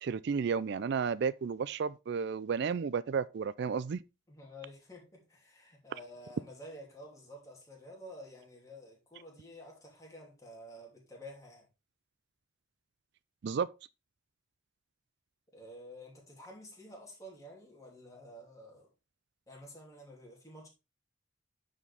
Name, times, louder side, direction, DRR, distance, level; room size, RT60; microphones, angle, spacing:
voice 1, 0.0-4.0 13.4-13.7, right 6 dB, 55° right, 0.4 m, -32 dB
voice 2, 4.3-11.7 15.5-18.9 19.5-20.7, left 1 dB, 15° left, 2.7 m, -50 dB
9.7 x 5.0 x 3.4 m
head